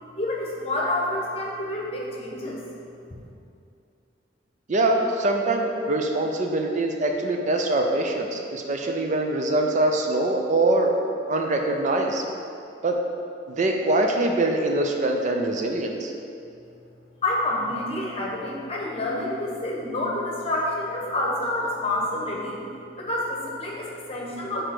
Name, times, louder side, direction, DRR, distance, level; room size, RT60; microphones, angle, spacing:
voice 1, 0.2-2.6 17.2-22.6 23.0-24.6, left 1 dB, 35° left, -3 dB, 1.1 m, -28 dB
voice 2, 4.7-11.0 11.3-12.2 12.8-13.0 13.5-16.1, right 2 dB, 40° right, 2 dB, 0.5 m, -23 dB
4.9 x 4.5 x 6.0 m, 2.5 s
head